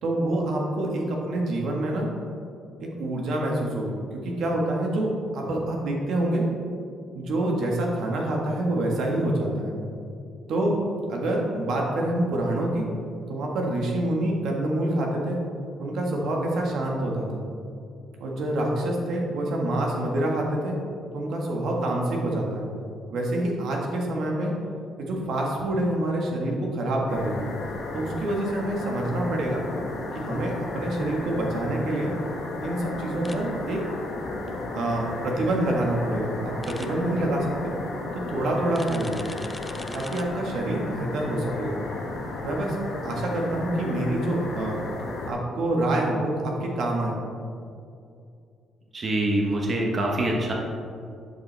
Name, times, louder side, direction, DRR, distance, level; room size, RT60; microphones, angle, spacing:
voice 1, 0.0-2.1 2.8-6.5 7.1-9.7 10.5-10.8 11.1-12.9 13.3-15.4 15.8-17.4 18.2-20.8 21.1-22.7 23.1-24.5 25.0-27.5 27.9-29.6 30.1-32.1 32.6-33.8 34.7-37.7 38.1-39.2 39.9-41.8 42.4-44.8 45.3-47.2, right 1 dB, 75° right, -1 dB, 1.5 m, -26 dB
sound 1, 27.1-45.3, left 2 dB, 85° left, 1.8 m, -34 dB
sound 2, 33.2-33.4 36.6-36.9 38.7-40.2, left 2 dB, 15° left, 0.6 m, -41 dB
voice 2, 48.9-50.5, right 1 dB, 40° right, -1 dB, 1.2 m, -25 dB
11.5 x 5.6 x 3.4 m, 2.4 s
cardioid pair, 90°, 0 cm